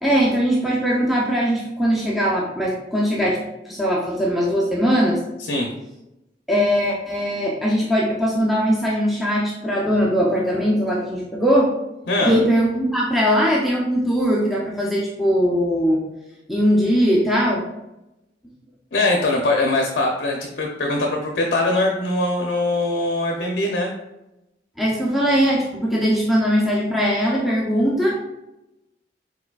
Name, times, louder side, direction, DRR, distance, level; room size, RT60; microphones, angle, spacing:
voice 1, 0.0-5.2 6.5-11.7 12.2-16.0 16.5-17.6 24.8-28.2, equal, ahead, -5 dB, 0.5 m, -20 dB
voice 2, 18.9-23.9, left 2 dB, 55° left, 1 dB, 0.6 m, -21 dB
4.7 x 4.1 x 2.3 m, 0.94 s
head